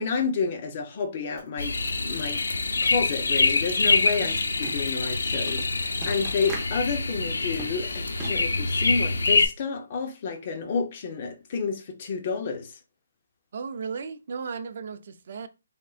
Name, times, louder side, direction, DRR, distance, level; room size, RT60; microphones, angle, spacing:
voice 1, 0.0-1.8 2.0-2.4 2.8-12.7, left 5 dB, 35° left, 0.7 m, -30 dB
Clock, 1.4-5.4, equal, 5° left, 1.9 m, -49 dB
sound 1, 1.6-9.5, left 3 dB, 90° left, 0.6 m, -25 dB
sound 2, 3.5-3.6 4.0-8.6, right 2 dB, 10° right, 0.7 m, -42 dB
voice 2, 4.1-4.4 13.5-15.5, right 5 dB, 50° right, 0.5 m, -35 dB
3.8 x 3.5 x 2.4 m
hypercardioid pair, 165°, 0 cm